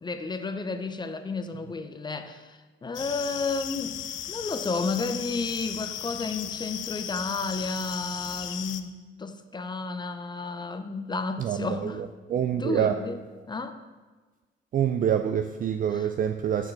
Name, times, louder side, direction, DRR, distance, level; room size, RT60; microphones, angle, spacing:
voice 1, 0.0-4.0 4.3-8.9 9.2-12.0 12.5-13.2 13.5-13.8 15.9-16.1, left 3 dB, 20° left, 9 dB, 0.6 m, -32 dB
sound 1, 2.9-8.8, left 10 dB, 70° left, 0.5 m, -36 dB
voice 2, 11.4-12.9 14.7-16.7, right 9 dB, 45° right, 8 dB, 0.4 m, -26 dB
6.1 x 4.3 x 6.4 m, 1.3 s
cardioid pair, 90°, 20 cm